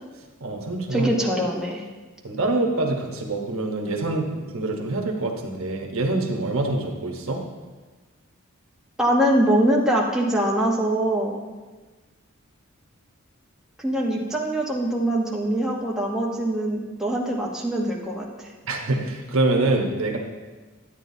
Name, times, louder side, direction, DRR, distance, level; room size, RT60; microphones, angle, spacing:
voice 1, 0.4-1.1 2.2-7.4 18.6-20.2, right 2 dB, 70° right, 2 dB, 1.1 m, -25 dB
voice 2, 0.9-1.8 9.0-11.4 13.8-18.5, right 1 dB, 5° right, -4 dB, 1.1 m, -23 dB
11.0 x 8.9 x 2.8 m, 1.3 s
head